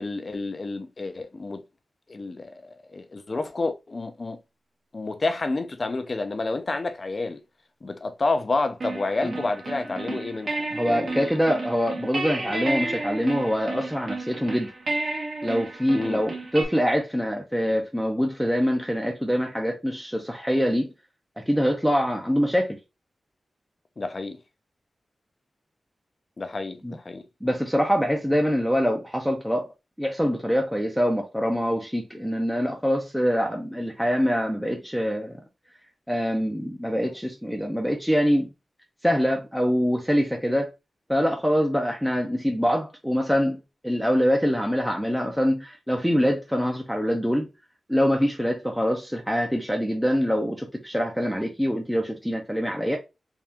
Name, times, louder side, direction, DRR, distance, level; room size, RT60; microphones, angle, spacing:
voice 1, 0.0-1.6 2.1-4.4 4.9-7.4 7.8-11.4 15.9-16.2 24.0-24.4 26.4-27.2, left 3 dB, 40° left, 0.6 m, -29 dB
sound 1, 8.8-16.6, right 2 dB, 60° right, 1.4 m, -32 dB
voice 2, 10.7-14.7 15.4-20.9 21.4-22.8 26.8-27.0 27.4-29.7 30.0-35.4 36.1-38.5 39.0-40.7 41.1-47.5 47.9-53.0, equal, ahead, 0.7 m, -24 dB
3.6 x 3.1 x 2.9 m
wide cardioid pair, 95°, 0 cm